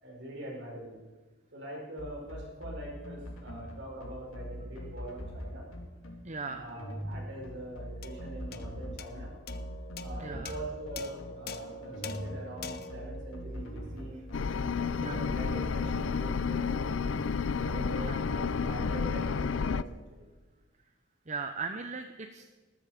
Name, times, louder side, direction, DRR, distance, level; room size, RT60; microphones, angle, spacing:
voice 1, 0.0-1.0 1.5-5.7 6.5-9.3 10.0-14.2 14.7-17.2 17.6-20.3, right 1 dB, 55° right, -1 dB, 5.2 m, -43 dB
sound 1, 2.0-15.7, equal, 85° left, 3.1 m, -42 dB
voice 2, 6.2-6.7 10.2-10.5 14.5-14.7 15.0-15.3 18.0-18.2 21.3-22.4, right 4 dB, 35° right, 7 dB, 0.7 m, -38 dB
sound 2, 8.0-14.6, left 3 dB, 50° left, 0.9 m, -45 dB
sound 3, 14.3-19.8, left 5 dB, 70° left, 0.5 m, -31 dB
20.0 x 13.5 x 5.0 m, 1.3 s
head